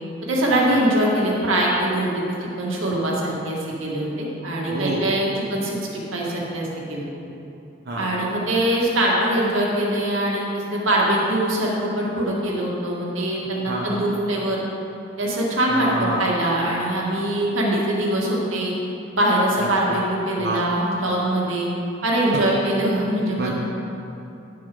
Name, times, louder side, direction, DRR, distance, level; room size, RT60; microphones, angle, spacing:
voice 1, 0.2-7.1 8.0-14.6 15.2-18.7 19.1-21.7 22.0-23.5, right 1 dB, 90° right, -3 dB, 1.9 m, -23 dB
voice 2, 4.7-5.1 7.9-8.1 13.7-13.9 15.7-16.3 19.9-20.0 20.4-20.6 23.4-23.5, right 1 dB, 55° right, -4 dB, 1.1 m, -27 dB
10.5 x 6.7 x 5.3 m, 2.9 s
head